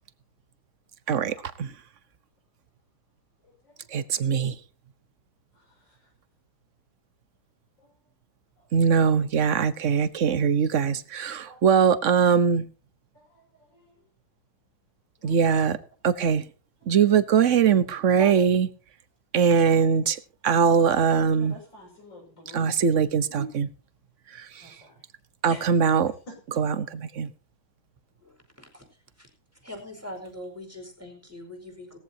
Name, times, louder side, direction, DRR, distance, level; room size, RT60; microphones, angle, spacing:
voice 1, 1.1-1.7 3.9-4.6 8.7-12.6 15.2-15.8 16.0-16.4 16.9-18.7 19.3-21.6 22.5-23.7 24.3-24.7 25.4-26.1 26.5-27.3, right 6 dB, 50° right, 0.9 m, -22 dB
voice 2, 3.4-3.9 5.5-6.1 7.8-7.9 8.6-8.7 11.4-11.7 13.1-14.0 15.2-15.6 16.1-16.3 16.8-16.9 18.2-18.5 21.3-22.7 23.3-23.5 24.6-25.0 25.5-25.7 26.3-26.6, right 1 dB, 55° left, 7.0 m, -45 dB
voice 3, 28.2-28.8 29.2-29.3 29.6-32.0, left 1 dB, 5° right, 4.5 m, -42 dB
19.0 x 14.5 x 2.8 m
omnidirectional pair, 2.3 m